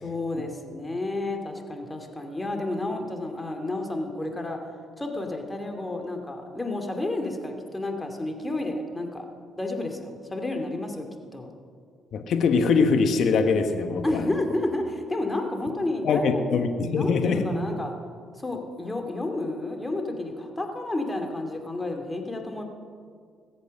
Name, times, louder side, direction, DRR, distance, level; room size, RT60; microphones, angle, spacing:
voice 1, 0.0-9.3 9.6-11.0 11.3-11.5 14.0-16.4 16.9-17.9 18.4-22.6, left 2 dB, 20° left, 4 dB, 2.4 m, -31 dB
voice 2, 12.1-14.0 16.0-17.4, left 5 dB, 65° left, 6 dB, 1.2 m, -22 dB
20.5 x 8.1 x 6.5 m, 2.1 s
supercardioid pair, 65°, 0 cm